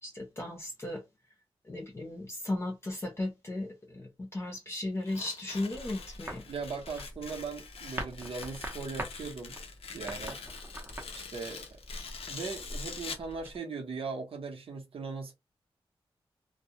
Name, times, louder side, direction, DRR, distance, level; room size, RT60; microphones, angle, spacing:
voice 1, 0.0-1.0 1.7-6.4, left 2 dB, 25° left, 0.6 m, -36 dB
Tearing, 5.0-13.3, left 5 dB, 85° left, 0.5 m, -44 dB
sound 1, 5.7-13.6, right 1 dB, 20° right, 0.7 m, -44 dB
voice 2, 6.4-9.6 9.9-10.4 11.1-11.6 12.3-15.3, right 4 dB, 75° right, 0.8 m, -39 dB
2.3 x 2.1 x 2.8 m
wide cardioid pair, 115°, 10 cm